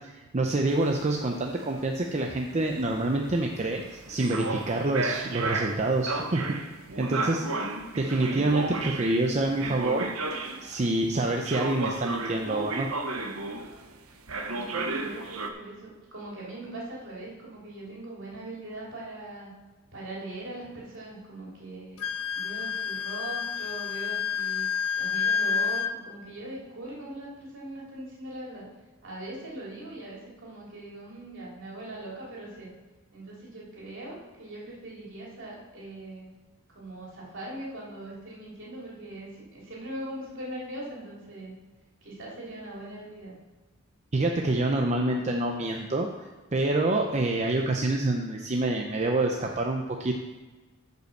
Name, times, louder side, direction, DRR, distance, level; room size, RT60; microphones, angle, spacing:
voice 1, 0.0-6.4 7.0-7.5 8.0-10.1 10.6-12.9 44.1-46.1 46.5-50.1, right 2 dB, 35° right, 2 dB, 0.6 m, -27 dB
sound 1, 0.7-10.9 11.4-13.9 14.3-15.5, right 3 dB, 85° right, 0.9 m, -33 dB
voice 2, 14.5-19.5 19.9-22.0 22.3-24.7 25.0-28.6 29.0-32.7 33.1-36.3 36.7-41.5 42.0-43.3, right 1 dB, 60° right, -5 dB, 3.1 m, -41 dB
Wind instrument woodwind instrument, 22.0-25.9, left 7 dB, 75° left, 0.6 m, -29 dB
8.7 x 5.5 x 6.6 m, 1.2 s
head